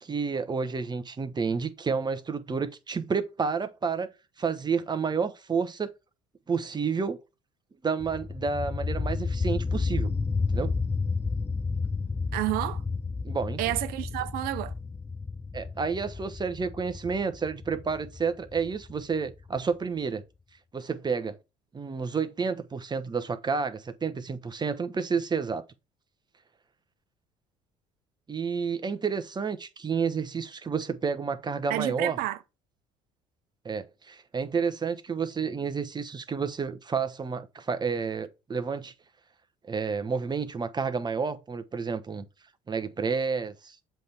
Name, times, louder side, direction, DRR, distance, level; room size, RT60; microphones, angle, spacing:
voice 1, 0.0-4.1 4.4-5.9 6.5-7.2 7.8-10.1 10.5-10.7 13.2-13.6 15.5-20.2 20.7-21.4 21.7-25.6 28.3-32.2 33.6-38.9 39.7-42.2 42.7-43.7, right 5 dB, 25° right, 1.1 m, -30 dB
sound 1, 8.0-19.6, left 4 dB, 15° left, 0.4 m, -31 dB
voice 2, 12.3-12.8 13.6-14.7 31.7-32.4, right 15 dB, 70° right, 0.7 m, -29 dB
7.5 x 3.5 x 4.3 m
supercardioid pair, 75°, 16 cm